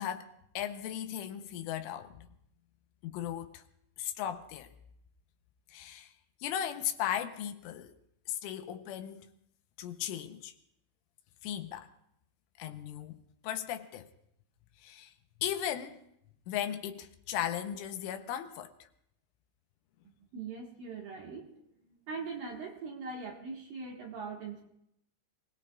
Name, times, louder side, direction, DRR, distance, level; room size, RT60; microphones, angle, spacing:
voice 1, 0.0-2.3 3.0-3.6 4.0-4.7 5.7-6.1 6.4-7.9 8.3-9.3 9.8-10.5 11.4-11.9 12.6-13.2 13.4-14.1 14.8-15.1 15.4-16.0 16.5-18.7, left 10 dB, 85° left, 3.3 m, -37 dB
voice 2, 20.3-21.5 21.9-24.7, right 4 dB, 60° right, 2.7 m, -41 dB
29.0 x 20.0 x 2.4 m
omnidirectional pair, 5.7 m